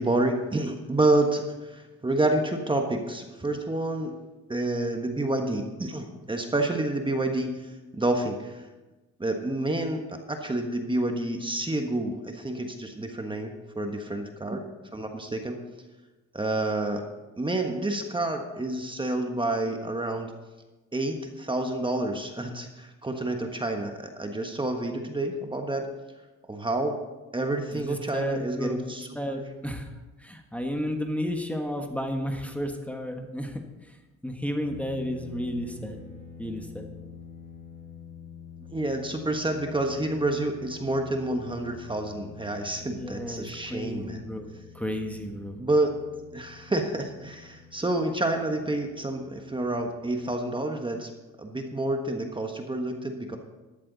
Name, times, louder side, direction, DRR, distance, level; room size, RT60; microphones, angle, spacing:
voice 1, 0.0-4.1 4.5-8.6 9.2-14.6 14.9-15.6 16.3-17.0 17.4-20.3 20.9-25.9 26.5-27.0 27.3-29.4 38.7-44.3 45.6-45.9 46.3-51.1 51.4-53.4, right 2 dB, 15° right, 4 dB, 1.3 m, -29 dB
voice 2, 27.7-29.9 30.2-33.6 33.9-34.0 34.2-36.0 36.4-36.9 42.8-44.5 44.7-45.6, equal, 5° left, 4 dB, 1.4 m, -32 dB
sound 1, 34.6-50.2, left 6 dB, 85° left, 4.1 m, -47 dB
13.0 x 12.5 x 4.1 m, 1.1 s
cardioid pair, 90°, 30 cm